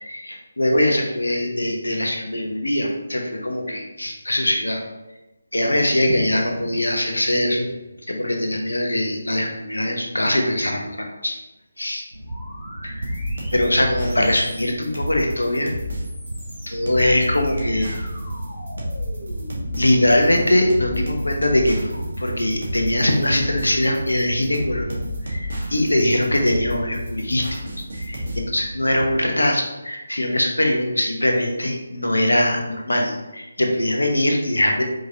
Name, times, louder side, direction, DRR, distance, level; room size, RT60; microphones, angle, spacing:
voice 1, 0.0-4.8 5.5-7.7 8.1-10.9 11.2-11.4 11.8-12.0 12.8-12.9 13.5-15.7 16.7-17.9 19.8-27.6 27.9-34.8, left 1 dB, 80° left, 2 dB, 0.9 m, -22 dB
sound 1, 12.1-29.3, right 1 dB, 80° right, 0.6 m, -33 dB
sound 2, 12.3-14.9 15.8-21.7, equal, 10° left, 1.4 m, -41 dB
sound 3, 13.0-28.4, left 1 dB, 55° right, 1.2 m, -32 dB
4.9 x 3.2 x 2.7 m, 1.0 s
figure-of-eight pair, 155°, 0 cm